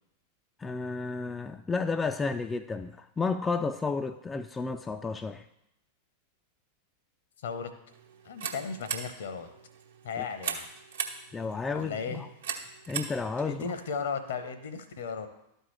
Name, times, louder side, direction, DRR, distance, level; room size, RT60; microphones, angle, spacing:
voice 1, 0.6-5.4 10.2-10.3 11.3-12.3 12.9-13.7, left 4 dB, 15° left, 8 dB, 0.3 m, -32 dB
sound 1, 7.9-14.1, right 6 dB, 65° right, 1.0 m, -40 dB
voice 2, 8.2-9.5 10.0-10.7 11.7-12.3 13.4-15.3, left 5 dB, 60° left, 9 dB, 0.8 m, -35 dB
12.5 x 4.6 x 3.2 m, 0.81 s
figure-of-eight pair, 90°, 0 cm